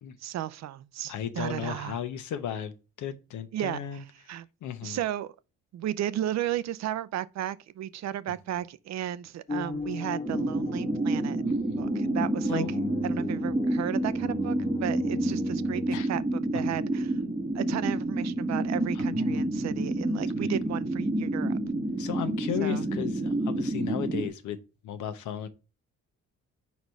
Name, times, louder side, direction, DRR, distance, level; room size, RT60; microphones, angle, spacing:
voice 1, 0.2-2.0 3.5-4.5 4.8-5.3 5.7-11.4 11.8-12.6 13.0-17.2 17.5-21.6 22.6-22.8, right 12 dB, 65° right, 0.5 m, -34 dB
voice 2, 1.1-2.7 3.0-4.0 4.6-5.0 11.5-11.8 12.5-12.7 15.9-16.1 18.9-19.7 20.2-20.5 22.0-24.6 24.8-25.5, left 9 dB, 75° left, 0.9 m, -35 dB
sound 1, 9.5-16.0, left 3 dB, 30° left, 1.3 m, -38 dB
sound 2, 10.3-24.3, right 1 dB, 15° right, 0.9 m, -29 dB
4.7 x 4.1 x 5.2 m
cardioid pair, 90°, 30 cm